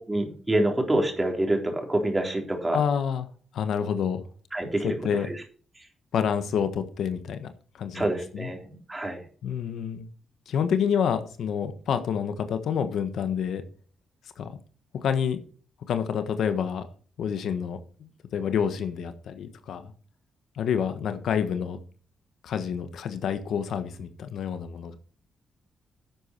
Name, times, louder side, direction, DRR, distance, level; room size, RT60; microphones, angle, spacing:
voice 1, 0.1-2.8 4.5-4.9 5.3-5.4 7.9-9.2, right 1 dB, 15° right, 2 dB, 3.8 m, -26 dB
voice 2, 2.7-3.3 3.5-4.2 4.8-5.3 6.1-8.5 9.4-10.1 10.5-13.6 14.4-14.6 15.0-15.4 15.9-16.8 17.2-19.9 20.5-21.8 22.4-25.0, left 7 dB, 80° left, 9 dB, 1.3 m, -28 dB
11.0 x 8.3 x 4.5 m, 0.42 s
cardioid pair, 80°, 0 cm